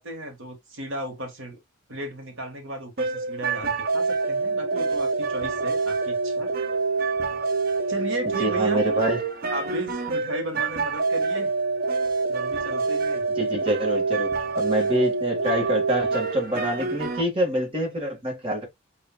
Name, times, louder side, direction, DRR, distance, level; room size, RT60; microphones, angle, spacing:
voice 1, 0.0-1.6 1.9-6.5 7.9-8.8 9.5-11.5 12.3-13.2, right 1 dB, 65° right, 1.4 m, -35 dB
sound 1, 3.0-17.2, right 4 dB, 45° right, 0.5 m, -26 dB
voice 2, 8.4-9.2 13.4-18.7, equal, 25° right, 1.4 m, -26 dB
5.7 x 2.6 x 2.2 m
head